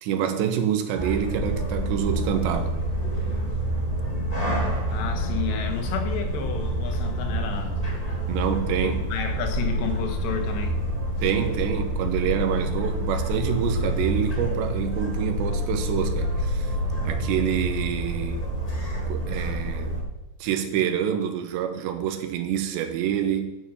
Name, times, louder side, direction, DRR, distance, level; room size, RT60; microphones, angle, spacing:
voice 1, 0.0-2.7 8.3-9.1 11.2-16.8 17.0-18.5 19.1-19.9 20.4-23.5, right 9 dB, 80° right, 7 dB, 3.2 m, -27 dB
sound 1, 0.9-20.0, right 1 dB, 20° left, 0.9 m, -27 dB
voice 2, 4.9-7.7 8.8-10.8, left 8 dB, 80° left, 4 dB, 3.4 m, -31 dB
9.3 x 6.9 x 7.0 m, 0.94 s
omnidirectional pair, 5.1 m